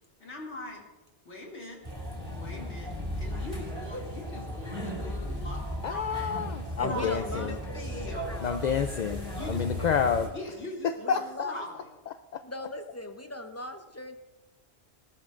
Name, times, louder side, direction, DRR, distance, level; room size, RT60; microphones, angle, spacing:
voice 1, 0.2-0.8 1.2-1.8 2.4-2.9 3.2-6.2 6.9-8.5 9.3-9.9 10.3-11.9, left 1 dB, 75° left, -2 dB, 2.8 m, -41 dB
sound 1, 1.8-10.3, left 1 dB, 25° right, 4.1 m, -36 dB
voice 2, 5.8-7.6 8.4-9.2 9.5-10.3 10.8-11.5 12.1-12.4, left 7 dB, 55° left, 8 dB, 0.5 m, -29 dB
voice 3, 6.8-8.7 9.7-9.9 11.0-11.6 12.4-14.2, left 1 dB, 15° left, 6 dB, 0.7 m, -39 dB
18.5 x 13.0 x 2.5 m, 1.1 s
omnidirectional pair, 1.2 m